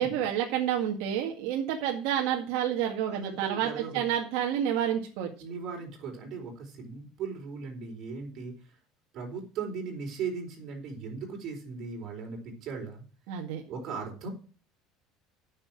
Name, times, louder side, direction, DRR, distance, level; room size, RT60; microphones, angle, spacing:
voice 1, 0.0-5.3 13.3-13.6, right 10 dB, 75° right, 1 dB, 1.8 m, -29 dB
voice 2, 3.0-4.0 5.4-8.8 9.1-13.0 13.7-14.3, right 5 dB, 50° right, 1 dB, 4.4 m, -38 dB
9.0 x 6.6 x 7.5 m, 0.38 s
cardioid pair, 130°, 0 cm